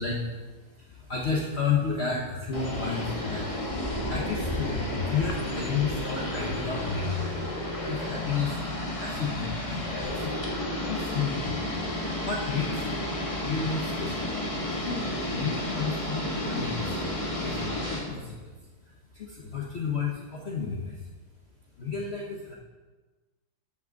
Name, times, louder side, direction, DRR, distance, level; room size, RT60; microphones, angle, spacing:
voice 1, 0.0-7.3 7.9-10.4 10.7-11.6 12.2-12.9 13.4-14.3 14.6-21.1 21.8-22.5, left 5 dB, 45° left, -3 dB, 1.1 m, -32 dB
sound 1, 2.5-18.0, left 1 dB, 20° left, 1.4 m, -32 dB
13.5 x 6.0 x 3.9 m, 1.3 s
omnidirectional pair, 1.8 m